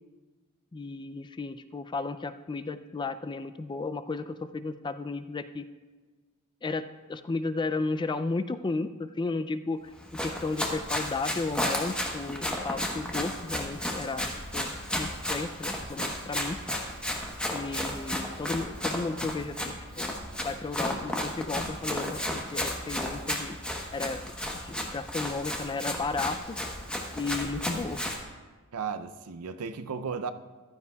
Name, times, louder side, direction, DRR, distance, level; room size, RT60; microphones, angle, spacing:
voice 1, 0.7-5.7 6.6-9.8 10.1-16.6 17.5-19.6 20.0-20.2 20.4-23.6 23.9-26.6 27.2-28.0, left 3 dB, 20° left, 11 dB, 0.3 m, -34 dB
Run, 10.0-28.2, left 1 dB, 5° left, 1.0 m, -33 dB
voice 2, 28.7-30.3, right 6 dB, 80° right, 11 dB, 0.5 m, -34 dB
14.5 x 12.0 x 2.3 m, 1.3 s
head